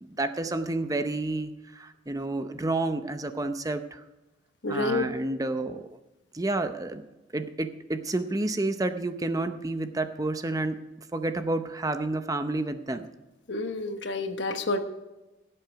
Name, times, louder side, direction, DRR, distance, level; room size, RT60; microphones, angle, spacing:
voice 1, 0.0-4.0 4.7-6.0 6.3-7.0 7.3-10.8 11.1-13.1, right 2 dB, 20° right, 9 dB, 0.7 m, -30 dB
voice 2, 4.6-5.1 13.5-14.8, left 2 dB, 75° left, 7 dB, 1.3 m, -29 dB
16.5 x 7.7 x 4.6 m, 1.0 s
head